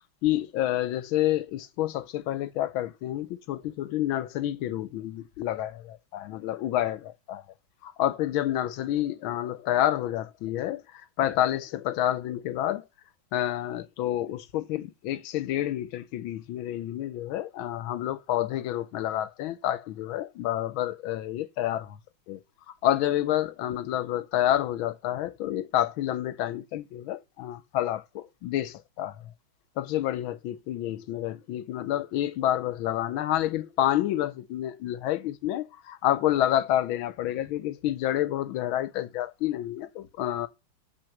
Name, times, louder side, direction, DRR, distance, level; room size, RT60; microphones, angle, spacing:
voice 1, 0.2-7.4 7.8-12.8 13.3-22.0 22.3-22.4 22.8-29.2 29.8-40.5, left 13 dB, 80° left, 1.5 m, -29 dB
6.5 x 6.2 x 5.8 m
omnidirectional pair, 2.2 m